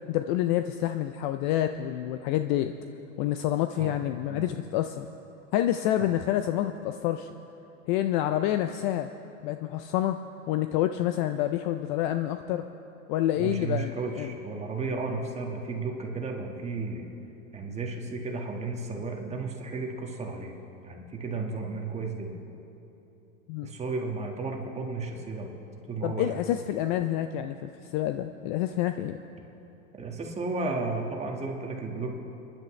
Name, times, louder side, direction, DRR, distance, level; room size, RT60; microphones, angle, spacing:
voice 1, 0.1-2.7 3.2-5.1 5.5-7.3 7.9-9.1 9.4-10.2 10.5-12.6 13.1-14.3 23.5-23.7 26.0-29.2, left 12 dB, 40° left, 9 dB, 0.4 m, -28 dB
voice 2, 13.4-17.1 17.5-20.5 20.8-22.3 23.6-25.5 25.9-26.4 30.0-32.1, right 3 dB, 15° right, 1 dB, 1.6 m, -33 dB
26.0 x 10.5 x 3.2 m, 2.9 s
hypercardioid pair, 125°, 40 cm